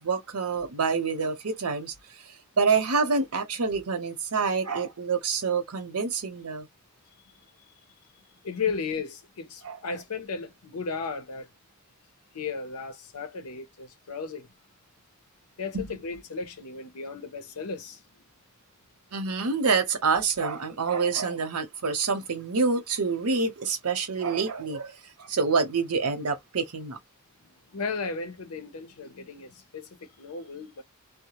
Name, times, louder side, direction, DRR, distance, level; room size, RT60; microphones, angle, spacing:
voice 1, 0.0-1.9 2.6-6.7 9.6-9.8 15.7-15.9 19.1-27.0, right 4 dB, 85° right, 0.8 m, -27 dB
voice 2, 8.4-11.5 12.3-14.5 15.6-18.0 27.7-30.8, left 5 dB, 85° left, 0.7 m, -35 dB
2.2 x 2.0 x 2.9 m
head